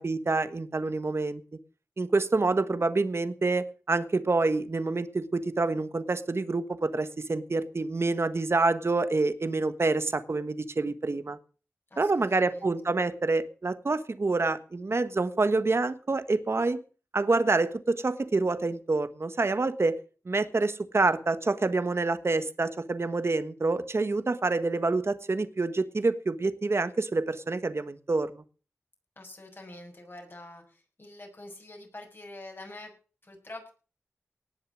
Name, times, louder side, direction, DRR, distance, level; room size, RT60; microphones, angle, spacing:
voice 1, 0.0-1.4 2.0-11.4 12.0-16.8 17.1-20.0 20.2-28.4, right 3 dB, 60° right, 12 dB, 1.3 m, -27 dB
voice 2, 11.9-12.7 29.1-32.9 33.2-33.7, left 2 dB, 45° left, 2 dB, 6.8 m, -46 dB
19.0 x 6.7 x 7.5 m, 0.38 s
wide cardioid pair, 55°, 5 cm